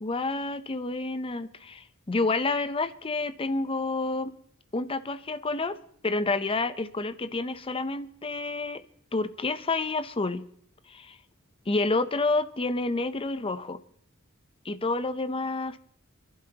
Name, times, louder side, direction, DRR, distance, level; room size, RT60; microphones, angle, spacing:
voice 1, 0.0-4.3 4.7-5.8 6.0-8.8 9.1-10.4 10.9-11.1 11.7-13.8 14.6-15.8, left 3 dB, 25° left, 0.6 m, -29 dB
28.0 x 11.0 x 2.9 m
head